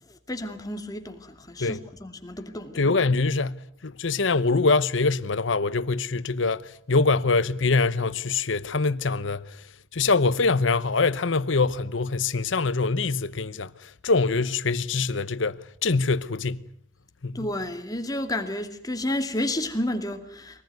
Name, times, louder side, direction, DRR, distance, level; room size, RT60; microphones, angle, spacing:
voice 1, 0.1-2.9 17.3-20.6, left 1 dB, 20° left, 2.5 m, -31 dB
voice 2, 2.8-9.4 9.9-13.7 14.0-16.6 17.2-17.5, left 3 dB, 80° left, 0.9 m, -24 dB
24.5 x 19.5 x 9.4 m
head